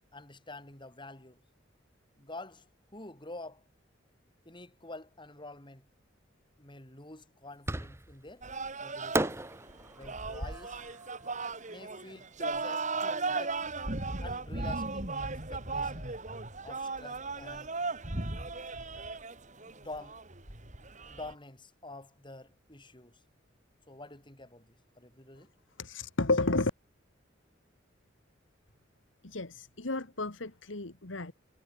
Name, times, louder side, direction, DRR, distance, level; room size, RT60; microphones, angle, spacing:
voice 1, 0.1-1.4 2.2-3.7 4.5-5.9 6.6-8.5 8.8-9.4 10.0-10.8 11.7-13.6 14.2-16.1 16.6-17.7 19.7-20.2 21.1-23.2 23.9-25.5, left 2 dB, 25° left, 5.2 m, -48 dB
Fireworks, 7.7-8.3 9.1-12.3, right 1 dB, 15° right, 1.3 m, -36 dB
em-footbalfans by nm, 8.4-21.3, right 3 dB, 40° right, 3.6 m, -36 dB
voice 2, 25.8-26.7 29.2-31.3, left 2 dB, 85° left, 2.2 m, -31 dB
head